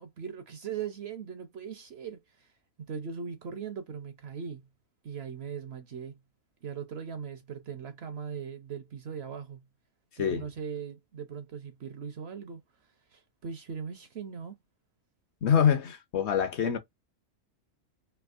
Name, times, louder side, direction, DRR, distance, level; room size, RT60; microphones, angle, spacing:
voice 1, 0.0-2.5 2.9-4.7 5.0-6.2 6.6-9.7 10.2-12.6 13.1-14.6, right 7 dB, 60° right, 0.7 m, -39 dB
voice 2, 15.4-16.8, left 8 dB, 60° left, 0.8 m, -25 dB
3.4 x 2.7 x 2.4 m
omnidirectional pair, 1.5 m